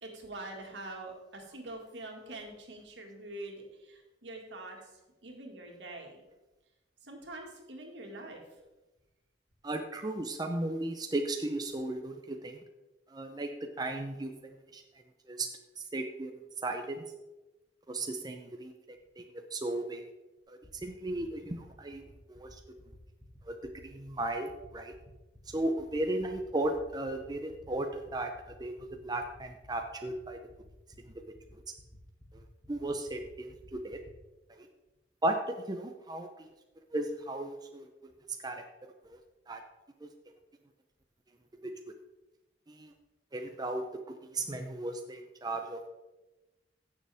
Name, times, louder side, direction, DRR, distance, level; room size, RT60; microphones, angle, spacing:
voice 1, 0.0-4.8 5.2-6.2 7.0-8.4, right 2 dB, 80° right, 1 dB, 2.1 m, -44 dB
voice 2, 9.6-12.1 12.4-12.5 13.1-13.5 13.8-14.3 14.7-14.8 15.3-15.5 15.9-16.3 16.6-17.0 17.9-18.7 19.5-20.0 20.8-22.0 22.4-22.5 23.9-24.5 24.7-24.9 25.5-28.3 28.6-28.7 29.0-30.4 32.7-33.2 33.8-34.0 35.2-35.4 35.7-36.3 36.9-37.8 38.4-38.5 39.5-39.6 43.3-43.8 44.3-45.9, right 2 dB, 20° right, 4 dB, 0.6 m, -34 dB
sound 1, 20.4-34.1, equal, 10° left, 1.7 m, -56 dB
15.5 x 6.7 x 3.5 m, 1.1 s
head